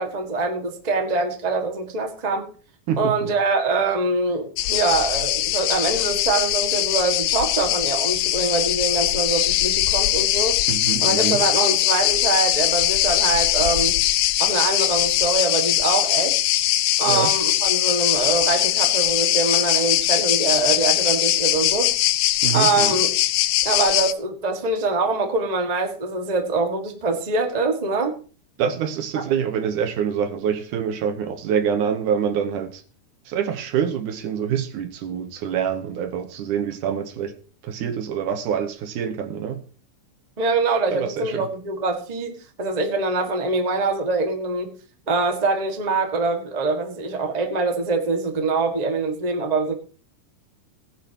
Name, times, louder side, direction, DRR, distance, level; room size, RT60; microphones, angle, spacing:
voice 1, 0.0-2.5 3.0-10.6 11.0-14.0 14.4-16.4 17.0-21.9 22.5-23.1 23.6-28.1 29.1-29.2 40.4-44.7 45.1-49.7, right 3 dB, 20° right, 1.0 m, -24 dB
voice 2, 2.9-3.3 10.7-11.4 17.1-17.3 22.4-22.9 28.6-32.8 33.3-37.3 37.6-39.6 40.9-41.5, right 8 dB, 75° right, 2.4 m, -26 dB
sound 1, 4.6-24.1, left 15 dB, 75° left, 2.1 m, -21 dB
19.0 x 10.0 x 2.9 m
omnidirectional pair, 3.8 m